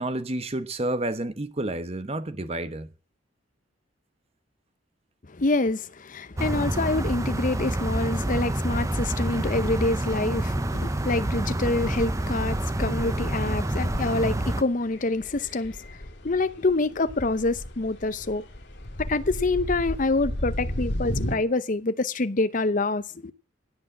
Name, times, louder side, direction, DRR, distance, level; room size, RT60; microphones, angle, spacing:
voice 1, 0.0-2.9, right 1 dB, 30° right, 1.0 m, -30 dB
voice 2, 5.3-16.0 16.2-18.4 19.0-23.3, left 2 dB, 45° left, 0.8 m, -26 dB
sound 1, 6.4-14.6, right 1 dB, 15° right, 0.6 m, -27 dB
sound 2, 11.8-21.4, equal, 60° left, 2.3 m, -35 dB
16.5 x 6.3 x 7.3 m
head